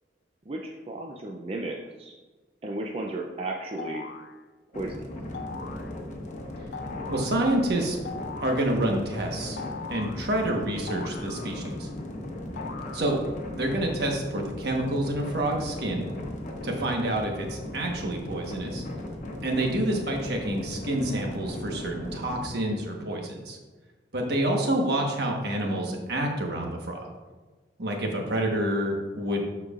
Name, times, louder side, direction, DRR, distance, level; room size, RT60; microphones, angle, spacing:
voice 1, 0.5-2.1 2.6-4.0 4.7-5.1, right 2 dB, 30° right, 0 dB, 0.5 m, -34 dB
sound 1, 3.8-4.3 5.3-5.9 6.7-7.3 8.0-8.7 9.6-10.2 10.9-11.8 12.6-13.4, left 5 dB, 65° left, 0.5 m, -40 dB
sound 2, 4.7-22.5, left 1 dB, 45° left, 1.0 m, -37 dB
voice 2, 7.1-8.0 8.4-9.6 9.9-11.9 12.9-13.2 13.5-16.1 16.6-18.8 19.4-23.6 24.1-27.1 27.8-29.4, right 1 dB, 60° right, 1 dB, 1.2 m, -28 dB
12.0 x 4.6 x 2.5 m, 1.3 s
head